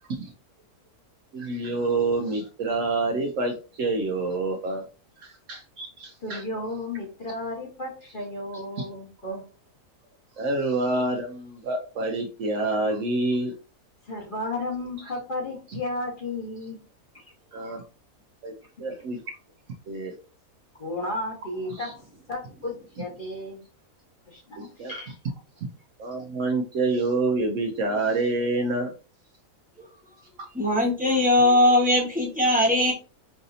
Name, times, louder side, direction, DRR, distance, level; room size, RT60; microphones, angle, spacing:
voice 1, 1.3-4.9 5.2-6.4 10.4-13.5 17.5-17.8 18.4-18.5 18.8-19.2 19.9-20.1 21.7-21.9 24.6-25.0 26.0-28.9, right 2 dB, 65° right, 4 dB, 0.9 m, -27 dB
voice 2, 6.2-9.4 14.1-16.8 17.1-17.2 20.8-22.0 22.3-23.7 24.3-25.1, left 2 dB, 35° left, -1 dB, 1.2 m, -33 dB
voice 3, 30.5-32.9, left 1 dB, 5° right, -2 dB, 1.0 m, -20 dB
4.8 x 2.6 x 2.6 m, 0.34 s
omnidirectional pair, 1.6 m